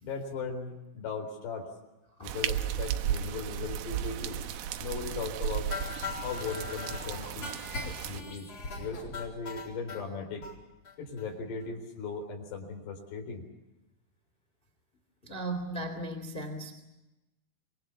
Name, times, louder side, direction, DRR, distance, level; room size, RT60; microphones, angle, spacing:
voice 1, 0.0-1.7 2.2-4.4 4.8-5.7 6.2-7.5 7.9-8.5 8.7-10.4 11.0-13.4, left 4 dB, 70° left, 2 dB, 6.2 m, -38 dB
sound 1, 2.2-8.2, right 10 dB, 70° right, 2.6 m, -34 dB
sound 2, 5.7-10.0 10.4-10.5 10.9-11.0 11.2-11.3 11.6-11.7, left 4 dB, 35° left, 5.1 m, -39 dB
voice 2, 15.2-16.7, right 1 dB, 15° left, 7 dB, 2.0 m, -36 dB
26.0 x 23.0 x 7.2 m, 1.0 s
omnidirectional pair, 5.1 m